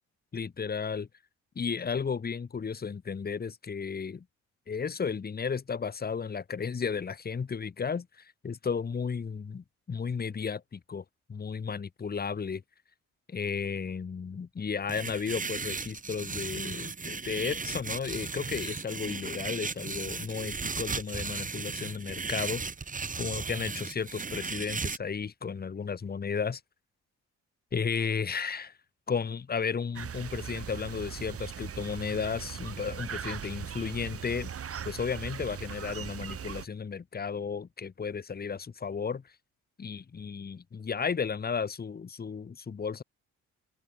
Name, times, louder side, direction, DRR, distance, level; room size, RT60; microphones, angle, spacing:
voice 1, 0.3-1.1 1.5-4.2 4.7-11.0 11.3-12.6 13.3-22.6 23.2-26.6 27.7-28.7 29.1-34.5 34.8-39.2 39.8-43.0, left 6 dB, 30° left, 1.5 m, -34 dB
sound 1, 14.9-25.0, right 4 dB, 25° right, 1.8 m, -36 dB
sound 2, 29.9-36.7, right 8 dB, 50° right, 2.1 m, -39 dB
cardioid pair, 90°, 30 cm